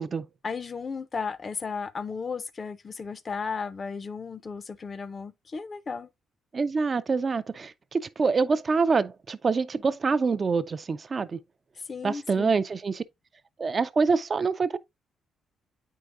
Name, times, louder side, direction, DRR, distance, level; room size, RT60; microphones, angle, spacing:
voice 1, 0.4-6.1 11.9-12.5, left 5 dB, 35° left, 0.4 m, -34 dB
voice 2, 6.5-11.4 12.0-13.0 13.6-14.8, right 4 dB, 35° right, 0.3 m, -26 dB
8.4 x 4.7 x 2.5 m
cardioid pair, 115°, 0 cm